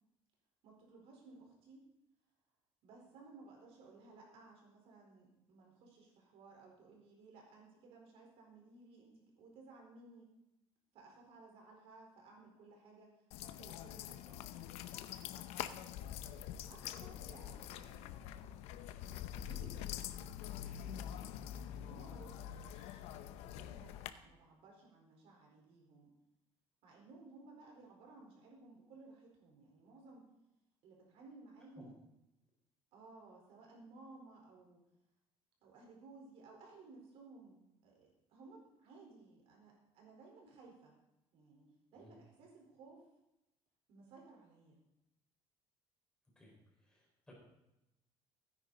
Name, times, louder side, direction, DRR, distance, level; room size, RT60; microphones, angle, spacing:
voice 1, 0.6-1.8 2.8-10.3 10.9-14.6 16.7-18.1 19.4-21.4 21.7-26.1 26.8-30.3 30.8-31.9 32.9-34.8 35.6-40.9 41.3-43.0 43.9-44.8, right 3 dB, 65° right, 0 dB, 4.4 m, -58 dB
sound 1, 13.3-24.1, left 11 dB, 90° left, 0.8 m, -45 dB
voice 2, 46.8-47.4, left 1 dB, 5° left, -3 dB, 4.9 m, -59 dB
16.5 x 10.0 x 4.1 m, 0.90 s
cardioid pair, 155°, 11 cm